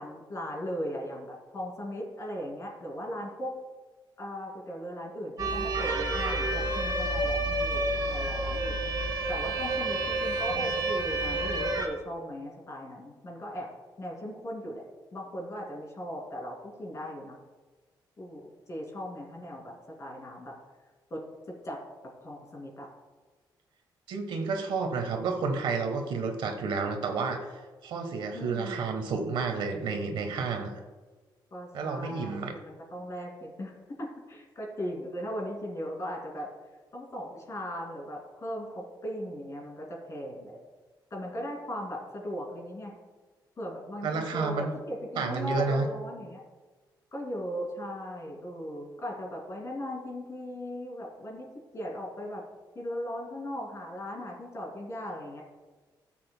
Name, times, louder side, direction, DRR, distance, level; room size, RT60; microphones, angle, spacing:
voice 1, 0.0-3.5 4.2-8.7 9.3-13.7 14.0-14.8 15.1-17.4 18.2-19.7 20.0-20.5 21.1-21.2 21.5-21.8 22.2-22.9 28.3-28.8 31.5-36.5 36.9-40.6 41.1-42.9 43.6-46.4 47.1-51.5 51.7-52.4 52.7-55.4, equal, 40° left, -1 dB, 2.4 m, -38 dB
sound 1, 5.4-11.9, right 2 dB, 55° right, 1.5 m, -29 dB
voice 2, 24.1-30.7 31.7-32.5 44.0-44.7 45.2-45.8, right 4 dB, 85° right, 5 dB, 1.2 m, -30 dB
13.5 x 7.6 x 2.2 m, 1.3 s
cardioid pair, 120°, 8 cm